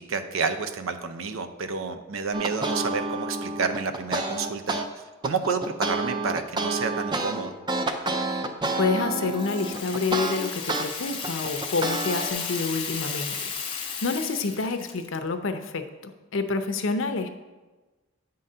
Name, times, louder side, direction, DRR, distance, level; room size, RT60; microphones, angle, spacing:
voice 1, 0.0-7.5, right 4 dB, 75° right, 9 dB, 0.6 m, -30 dB
sound 1, 2.3-4.9 5.2-10.8 11.2-12.3, right 2 dB, 20° right, 0.5 m, -29 dB
voice 2, 8.8-17.3, left 4 dB, 65° left, 8 dB, 0.6 m, -28 dB
Rattle (instrument), 9.2-15.2, left 6 dB, 25° left, 0.7 m, -34 dB
8.7 x 3.9 x 5.4 m, 1.2 s
head